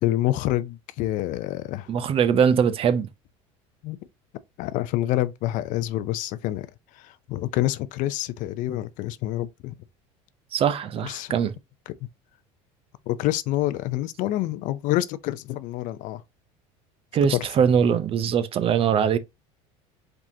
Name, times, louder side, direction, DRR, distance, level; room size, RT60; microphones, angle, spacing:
voice 1, 0.0-1.9 3.8-4.0 4.6-6.7 7.0-9.7 11.0-11.3 13.1-16.2 17.3-17.5, left 15 dB, 60° left, 0.5 m, -27 dB
voice 2, 1.9-3.1 10.5-11.5 17.1-19.2, right 7 dB, 40° right, 0.6 m, -21 dB
4.9 x 3.7 x 2.7 m
supercardioid pair, 120°, 15 cm